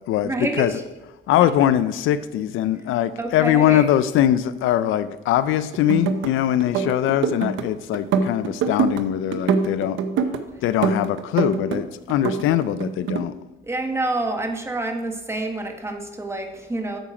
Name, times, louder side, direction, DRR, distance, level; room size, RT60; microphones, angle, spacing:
voice 1, 0.2-0.8 3.2-3.9 13.7-17.0, right 2 dB, 15° right, 3 dB, 1.4 m, -27 dB
voice 2, 1.3-10.0 10.6-13.3, left 11 dB, 85° left, 14 dB, 0.5 m, -21 dB
sound 1, 5.7-6.3 6.6-7.7 7.9-9.0 9.3-10.4 10.8-11.8 12.1-13.2, right 6 dB, 80° right, 0.8 m, -23 dB
8.9 x 7.3 x 4.9 m, 1.1 s
cardioid pair, 90°, 20 cm